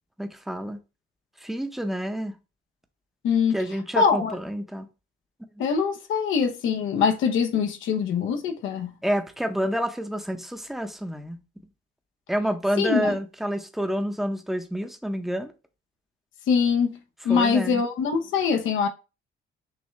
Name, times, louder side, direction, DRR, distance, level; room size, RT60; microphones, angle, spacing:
voice 1, 0.2-0.8 1.4-2.4 3.5-4.9 9.0-11.4 12.3-15.5 17.3-17.8, equal, ahead, 0.7 m, -28 dB
voice 2, 3.2-3.6 4.0-4.4 5.6-8.9 12.8-13.2 16.5-17.0 17.2-18.9, left 6 dB, 80° left, 0.8 m, -23 dB
6.3 x 2.3 x 3.1 m
cardioid pair, 90°, 20 cm